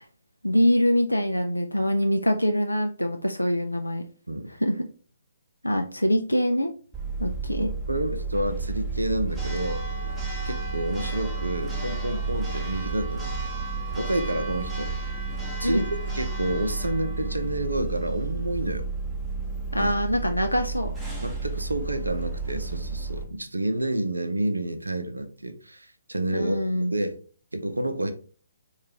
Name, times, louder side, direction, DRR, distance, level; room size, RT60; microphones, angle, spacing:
voice 1, 0.4-4.0 4.5-4.9 5.6-6.7 7.2-7.7 15.6-15.9 19.7-20.9 26.3-26.9, equal, 85° left, 5 dB, 0.4 m, -24 dB
Church bell, 6.9-23.2, right 3 dB, 10° right, 0.9 m, -31 dB
voice 2, 7.6-9.8 10.4-13.3 13.9-14.9 15.6-18.9 19.8-19.9 21.2-26.6 26.9-27.2 27.5-28.1, right 1 dB, 80° right, 8 dB, 0.5 m, -29 dB
4.6 x 2.3 x 2.8 m, 0.40 s
figure-of-eight pair, 135°, 0 cm